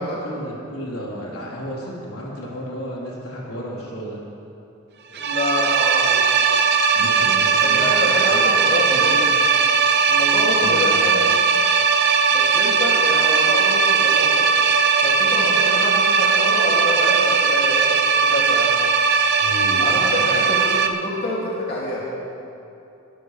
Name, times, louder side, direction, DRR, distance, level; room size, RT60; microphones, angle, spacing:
voice 1, 0.0-4.2 6.9-8.5 8.9-9.0 10.6-11.3 19.4-20.4, equal, 85° left, -5 dB, 4.0 m, -33 dB
voice 2, 5.1-6.2 7.6-9.2 10.1-11.1 12.3-14.4 15.0-18.7 19.8-22.1, left 1 dB, 45° left, -6 dB, 2.7 m, -27 dB
sound 1, 5.1-20.9, right 5 dB, 50° right, 0.8 m, -18 dB
22.5 x 14.5 x 3.4 m, 2.8 s
head